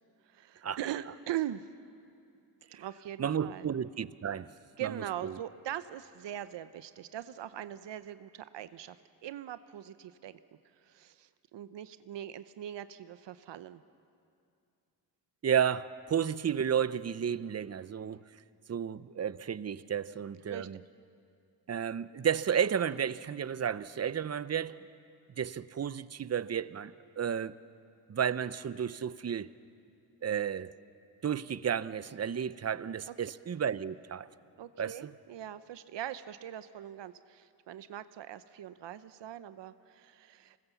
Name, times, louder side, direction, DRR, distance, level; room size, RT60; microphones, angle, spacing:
voice 1, 0.3-1.7 2.7-3.7 4.8-10.4 10.8-13.8 20.5-20.7 33.1-33.2 34.6-40.6, right 12 dB, 75° right, 0.7 m, -41 dB
voice 2, 3.2-4.5 4.8-4.9 5.2-5.3 15.4-18.2 18.7-20.8 21.7-24.9 25.4-27.5 28.1-29.5 30.2-30.7 31.2-34.3 34.8-35.1, right 8 dB, 35° right, 0.6 m, -32 dB
25.5 x 19.5 x 7.1 m
cardioid pair, 75°, 43 cm